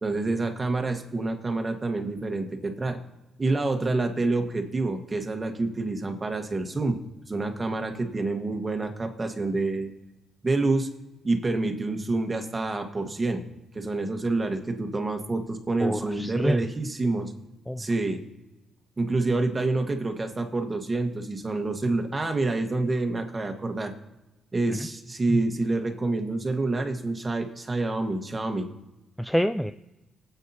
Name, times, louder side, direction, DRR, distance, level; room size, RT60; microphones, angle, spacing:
voice 1, 0.0-3.0 3.4-7.0 7.3-9.9 10.4-10.9 11.2-13.4 13.7-17.3 17.8-18.2 19.0-23.9 24.5-28.7, right 2 dB, 25° right, 5 dB, 1.5 m, -27 dB
voice 2, 15.8-16.6 17.7-17.8 24.7-24.8 29.2-29.7, equal, ahead, 9 dB, 0.3 m, -26 dB
19.5 x 8.2 x 2.9 m, 1.0 s
cardioid pair, 90°, 0 cm